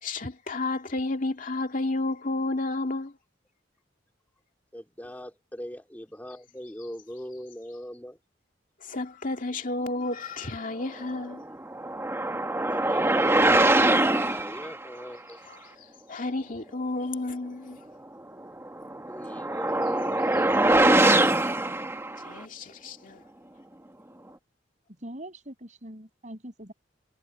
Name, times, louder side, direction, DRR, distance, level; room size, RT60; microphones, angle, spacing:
voice 1, 0.0-3.2 8.8-11.4 15.5-17.9 22.2-23.2, left 2 dB, 45° left, 2.3 m, -32 dB
voice 2, 4.7-8.2 12.7-15.4 19.1-20.9, equal, 10° left, 2.7 m, -40 dB
sound 1, 11.1-14.7 18.6-22.4, right 2 dB, 15° right, 1.4 m, -23 dB
voice 3, 25.0-26.7, right 1 dB, 40° right, 7.0 m, -42 dB
head